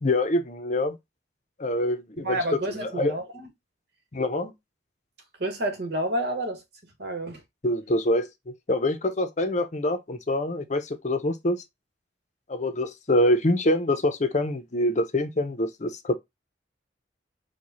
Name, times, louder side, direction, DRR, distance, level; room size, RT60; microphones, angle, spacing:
voice 1, 0.0-1.0 1.6-3.2 4.1-4.5 7.6-8.3 8.7-11.6 12.5-16.2, left 1 dB, 40° left, 0.7 m, -25 dB
voice 2, 2.2-3.5 5.4-6.6 7.0-7.4, right 1 dB, 60° right, 1.4 m, -29 dB
4.7 x 2.3 x 4.0 m
head